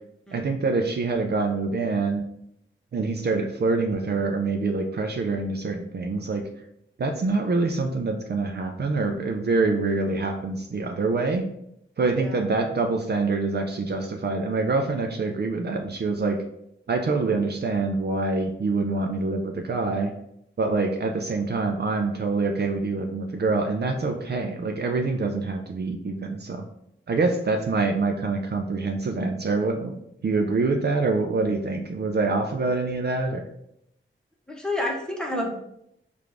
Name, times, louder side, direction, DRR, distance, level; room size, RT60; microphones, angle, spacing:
voice 1, 0.3-2.2 2.9-6.4 7.0-11.4 12.0-16.4 16.9-20.1 20.6-26.6 27.1-33.4, right 3 dB, 50° right, 4 dB, 0.5 m, -25 dB
voice 2, 34.5-35.5, left 1 dB, 5° left, -1 dB, 1.0 m, -29 dB
4.9 x 2.5 x 3.4 m, 0.76 s
wide cardioid pair, 100°, 21 cm